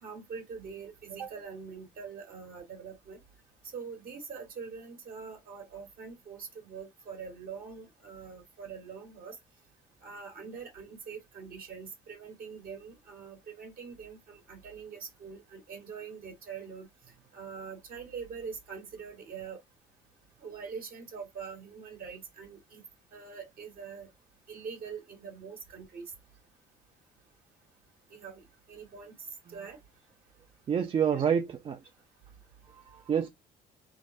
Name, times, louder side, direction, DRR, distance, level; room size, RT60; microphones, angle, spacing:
voice 1, 0.0-3.2 3.7-9.3 10.0-16.9 17.3-19.6 20.4-22.8 23.1-24.1 24.5-26.1 28.1-29.1 29.5-29.8 31.1-31.2, right 6 dB, 60° right, 1.4 m, -43 dB
voice 2, 30.7-31.8 32.9-33.3, right 7 dB, 35° right, 0.4 m, -27 dB
3.6 x 2.1 x 2.5 m
cardioid pair, 110°, 17 cm